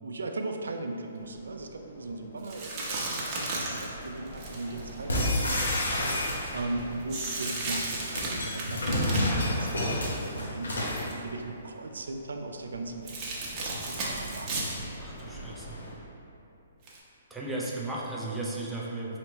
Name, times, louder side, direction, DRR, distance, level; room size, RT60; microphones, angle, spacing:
voice 1, 0.0-5.6 6.1-14.8, right 2 dB, 85° right, 4 dB, 0.4 m, -38 dB
sound 1, 1.2-15.9, right 1 dB, 55° left, 1.0 m, -46 dB
sound 2, 2.4-5.7 7.1-10.4 10.7-11.1 13.1-14.8 15.2-15.3 16.9-17.0, right 2 dB, 30° right, 0.8 m, -34 dB
sound 3, 5.1-6.8 7.8-11.1, left 1 dB, 85° left, 0.9 m, -28 dB
voice 2, 15.0-15.8 17.3-19.2, right 2 dB, 5° right, -5 dB, 0.5 m, -35 dB
4.2 x 3.2 x 3.0 m, 2.7 s
hypercardioid pair, 140°, 0 cm